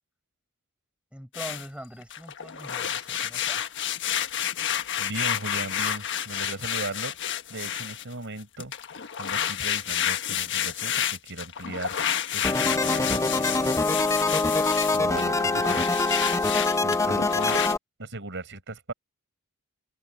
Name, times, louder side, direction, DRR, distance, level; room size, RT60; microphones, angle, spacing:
voice 1, 1.1-3.7, equal, 5° right, 6.5 m, -42 dB
sound 1, 1.3-1.7 2.0-8.1 8.6-17.7, left 10 dB, 55° left, 1.3 m, -30 dB
voice 2, 5.0-7.2 7.5-8.7 9.2-12.0 12.3-14.0 14.9-15.9 16.2-17.6 18.0-18.9, right 2 dB, 55° right, 5.8 m, -38 dB
sound 2, 12.4-17.8, left 3 dB, 15° left, 0.7 m, -24 dB
head